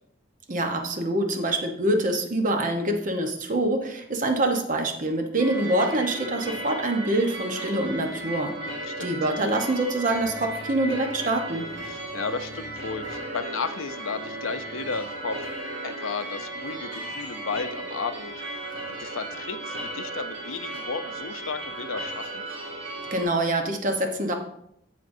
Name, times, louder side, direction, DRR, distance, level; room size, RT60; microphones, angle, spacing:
voice 1, 0.5-8.6 9.0-11.7 23.1-24.3, right 1 dB, 40° right, 4 dB, 1.0 m, -25 dB
sound 1, 5.4-23.2, right 2 dB, 65° right, 2.3 m, -35 dB
voice 2, 8.9-9.2 11.8-15.5 15.8-18.3 19.0-22.5, left 4 dB, 90° left, 10 dB, 0.6 m, -33 dB
15.0 x 5.1 x 2.7 m, 0.75 s
head